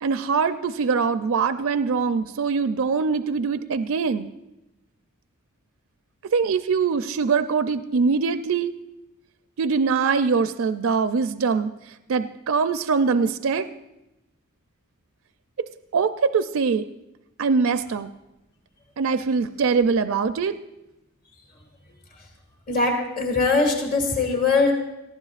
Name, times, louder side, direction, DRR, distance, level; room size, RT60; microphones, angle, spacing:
voice 1, 0.0-4.3 6.3-8.7 9.6-11.7 12.1-13.7 15.9-16.9 17.4-18.1 19.0-20.5, right 5 dB, 70° right, 10 dB, 0.4 m, -23 dB
voice 2, 22.7-24.7, left 3 dB, 45° left, 1 dB, 2.2 m, -21 dB
18.5 x 14.5 x 2.4 m, 0.94 s
head